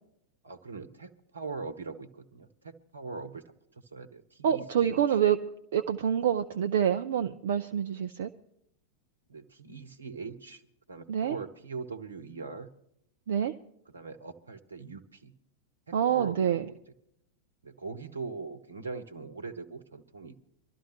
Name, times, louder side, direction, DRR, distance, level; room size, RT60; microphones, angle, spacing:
voice 1, 0.4-5.2 9.3-10.6 10.9-12.7 13.9-15.3 15.9-16.8 17.6-20.5, right 4 dB, 75° right, 9 dB, 1.1 m, -41 dB
voice 2, 4.4-5.4 5.7-8.3 11.1-11.4 13.3-13.5 15.9-16.6, right 9 dB, 60° right, 8 dB, 0.5 m, -26 dB
24.5 x 13.0 x 3.1 m, 0.75 s
figure-of-eight pair, 90°, 0 cm